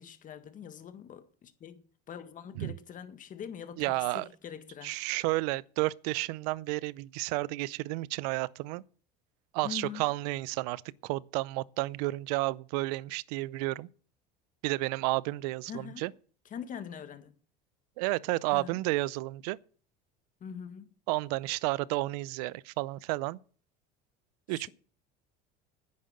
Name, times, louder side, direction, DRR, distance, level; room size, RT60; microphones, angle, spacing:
voice 1, 0.0-4.9 9.6-10.1 15.7-16.0 16.5-17.3 18.5-18.8 20.4-20.9 24.5-24.7, left 8 dB, 40° left, 1.8 m, -43 dB
voice 2, 3.8-4.3 4.8-8.8 9.5-13.9 14.6-16.1 18.0-19.6 21.1-23.4 24.5-24.7, right 21 dB, 75° right, 0.6 m, -31 dB
10.0 x 9.8 x 6.6 m
supercardioid pair, 90°, 21 cm